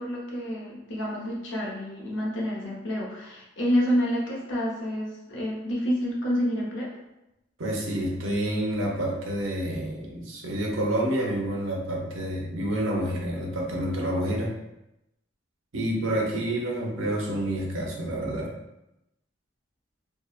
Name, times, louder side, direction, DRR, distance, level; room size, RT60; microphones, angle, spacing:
voice 1, 0.0-6.9, equal, 70° left, -3 dB, 0.7 m, -28 dB
voice 2, 7.6-14.5 15.7-18.5, right 1 dB, 80° right, -1 dB, 0.6 m, -28 dB
2.7 x 2.0 x 2.3 m, 0.90 s
head